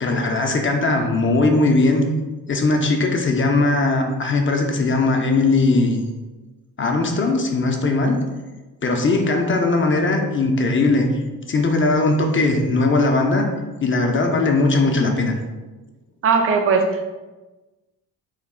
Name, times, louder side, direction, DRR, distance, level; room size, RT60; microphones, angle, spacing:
voice 1, 0.0-2.0 2.5-6.0 6.8-8.2 8.8-11.1 11.5-13.5 13.8-15.3, left 3 dB, 35° left, 3 dB, 0.5 m, -19 dB
voice 2, 16.2-17.1, right 5 dB, 40° right, 5 dB, 0.5 m, -18 dB
3.1 x 2.3 x 3.6 m, 1.2 s
cardioid pair, 75°, 34 cm